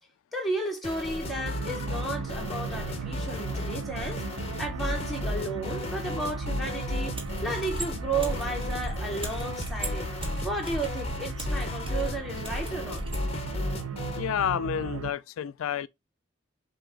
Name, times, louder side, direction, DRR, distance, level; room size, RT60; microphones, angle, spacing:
voice 1, 0.3-10.1 10.4-13.0, right 2 dB, ahead, 0.9 m, -33 dB
sound 1, 0.8-14.3, left 2 dB, 30° left, 0.7 m, -35 dB
sound 2, 1.2-15.1, right 5 dB, 85° right, 0.5 m, -37 dB
sound 3, 7.1-13.3, equal, 25° right, 1.4 m, -37 dB
voice 2, 14.2-15.9, left 9 dB, 90° left, 0.3 m, -29 dB
6.1 x 2.3 x 3.4 m
head